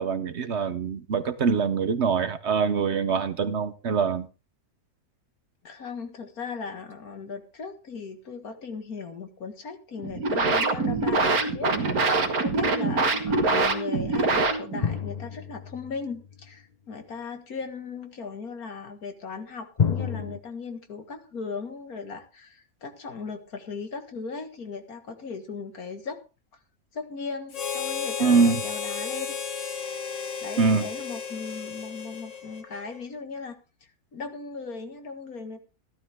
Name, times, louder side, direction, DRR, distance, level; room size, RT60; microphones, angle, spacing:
voice 1, 0.0-4.3 28.2-28.6 30.6-30.9, right 5 dB, 55° right, 1.0 m, -24 dB
voice 2, 5.6-26.2 26.9-29.4 30.4-35.6, left 4 dB, 80° left, 2.2 m, -38 dB
sound 1, 10.0-15.0, right 3 dB, 80° right, 2.1 m, -24 dB
sound 2, 14.8-16.5 19.8-20.4, left 7 dB, 40° left, 0.7 m, -29 dB
Harmonica, 27.5-33.0, left 6 dB, 55° left, 1.7 m, -34 dB
14.5 x 12.5 x 3.6 m
omnidirectional pair, 1.5 m